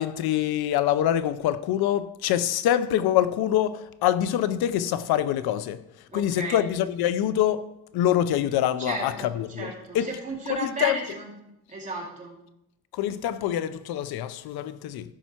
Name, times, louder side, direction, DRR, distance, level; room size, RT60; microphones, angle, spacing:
voice 1, 0.0-5.8 6.1-7.7 7.9-10.1 10.5-11.0 12.9-15.1, left 11 dB, 75° left, 0.6 m, -25 dB
voice 2, 6.1-6.6 8.8-11.3 11.7-12.3, right 3 dB, 20° right, 2.7 m, -34 dB
15.0 x 5.7 x 4.4 m
cardioid pair, 165°, 37 cm